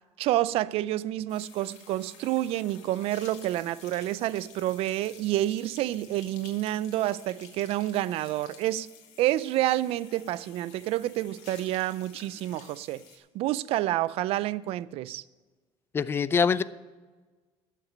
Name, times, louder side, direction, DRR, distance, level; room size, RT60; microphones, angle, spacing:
voice 1, 0.2-8.9 9.2-13.0 13.3-15.2, right 14 dB, 60° right, 0.4 m, -28 dB
sound 1, 1.3-13.2, left 8 dB, 85° left, 2.0 m, -52 dB
voice 2, 15.9-16.6, left 6 dB, 20° left, 0.3 m, -24 dB
11.5 x 7.4 x 6.6 m
cardioid pair, 160°, 11 cm